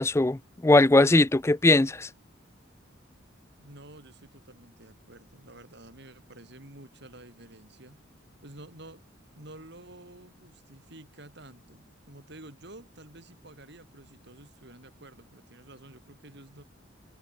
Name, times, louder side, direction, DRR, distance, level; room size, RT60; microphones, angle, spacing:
voice 1, 0.0-2.1, left 2 dB, 15° left, 0.4 m, -20 dB
voice 2, 3.6-8.0 8.4-9.0 9.4-16.6, right 1 dB, 55° right, 4.7 m, -50 dB
head